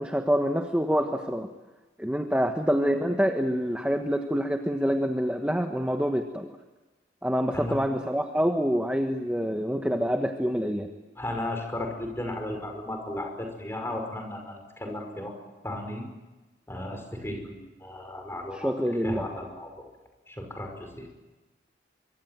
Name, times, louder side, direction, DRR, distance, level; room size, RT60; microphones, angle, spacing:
voice 1, 0.0-1.5 2.0-6.6 7.2-10.9 18.5-19.2, equal, 5° right, 5 dB, 1.3 m, -26 dB
voice 2, 11.2-15.3 15.6-16.1 16.7-18.7 19.0-19.9 20.3-21.1, left 1 dB, 15° left, 3 dB, 5.6 m, -35 dB
24.5 x 24.5 x 9.1 m, 1.1 s
head